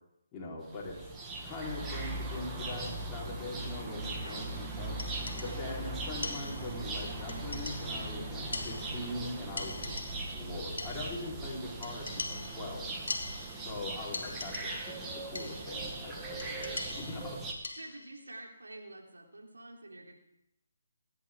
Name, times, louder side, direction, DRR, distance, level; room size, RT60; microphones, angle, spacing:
voice 1, 0.3-1.0 1.4-5.0 5.4-9.9 10.3-12.9 13.6-17.4, left 2 dB, 20° left, -4 dB, 3.9 m, -42 dB
sound 1, 0.6-17.5, right 2 dB, 15° right, 1.9 m, -39 dB
voice 2, 4.2-4.5 17.8-20.2, right 2 dB, 80° right, 0 dB, 3.1 m, -48 dB
sound 2, 5.0-5.8 6.2-6.9 7.3-8.1 8.5-9.3 9.6-10.4 10.8-11.3 11.8-13.8 14.1-15.0 15.3-15.8 16.4-18.2, left 3 dB, 70° left, 1.9 m, -42 dB
27.5 x 10.5 x 3.6 m, 0.80 s
figure-of-eight pair, 145°, 0 cm